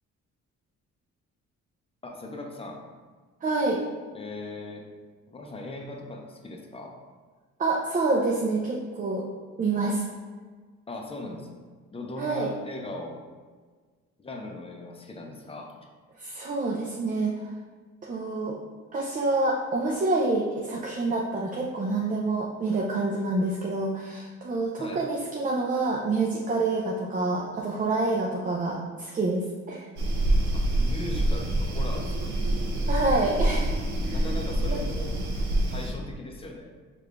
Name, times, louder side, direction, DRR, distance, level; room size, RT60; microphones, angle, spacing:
voice 1, 2.0-2.8 4.1-4.8 5.3-7.0 10.9-11.6 11.9-13.2 14.2-15.7 24.8-25.1 30.5-32.3 34.1-35.2 35.7-36.7, left 2 dB, 20° left, 1 dB, 0.6 m, -39 dB
voice 2, 3.4-3.8 7.6-9.2 9.6-10.0 12.2-12.5 16.2-17.3 18.0-18.6 18.9-29.9 32.9-33.7 34.1-34.2 34.7-34.8, right 2 dB, 25° right, -2 dB, 0.5 m, -27 dB
sound 1, 30.0-35.9, right 1 dB, 75° right, 0.8 m, -26 dB
4.8 x 2.5 x 3.3 m, 1.5 s
cardioid pair, 90°, 30 cm